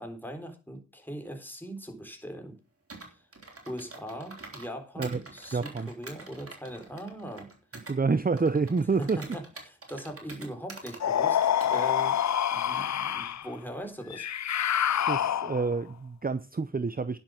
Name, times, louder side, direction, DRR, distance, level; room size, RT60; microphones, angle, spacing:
voice 1, 0.0-2.6 3.0-3.2 3.7-7.5 9.0-12.2 12.5-14.3, equal, 5° left, 3.8 m, -40 dB
Computer keyboard, 2.9-4.7 5.0-8.0 8.4-11.0 11.4-12.1, right 3 dB, 50° right, 3.8 m, -46 dB
voice 2, 5.5-5.9 7.9-9.2 15.1-17.2, right 4 dB, 30° right, 0.7 m, -28 dB
sound 1, 11.0-13.5 14.1-15.8, left 9 dB, 70° left, 0.5 m, -27 dB
10.5 x 7.3 x 6.4 m
wide cardioid pair, 60°, 29 cm